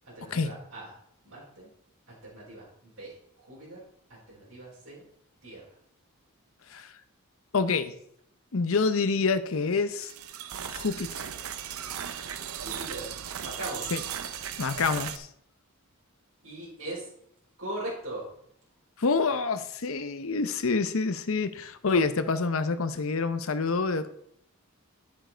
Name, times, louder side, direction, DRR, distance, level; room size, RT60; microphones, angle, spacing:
voice 1, 0.1-0.9 1.2-1.7 2.1-3.1 3.4-3.8 4.1-5.0 5.4-5.6 12.6-13.1 13.4-13.9 16.4-17.1 17.6-18.3, right 1 dB, 65° right, -11 dB, 4.4 m, -40 dB
voice 2, 7.5-7.9 8.5-10.1 10.6-11.3 13.9-14.0 14.6-15.3 19.0-24.1, left 4 dB, 70° left, 11 dB, 0.7 m, -27 dB
sound 1, 10.0-15.2, right 9 dB, 80° right, 0.6 m, -37 dB
9.1 x 7.5 x 4.4 m, 0.72 s
head